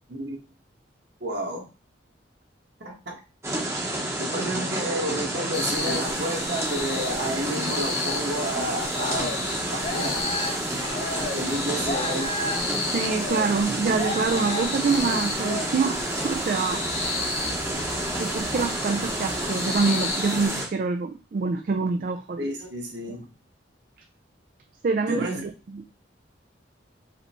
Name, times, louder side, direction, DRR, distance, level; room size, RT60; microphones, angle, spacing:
voice 1, 0.1-0.4 1.2-1.7 2.8-3.2 4.2-10.3 11.2-12.4 22.4-23.3 25.1-25.4, equal, 65° right, 1.4 m, -31 dB
sound 1, 3.4-20.7, right 1 dB, 15° right, 0.8 m, -30 dB
sound 2, 5.5-20.6, left 3 dB, 75° left, 1.9 m, -34 dB
sound 3, 8.4-19.6, left 2 dB, 35° left, 0.6 m, -36 dB
voice 2, 12.9-16.9 18.2-22.5 24.8-25.8, right 4 dB, 45° right, 0.3 m, -26 dB
4.9 x 3.3 x 3.0 m
head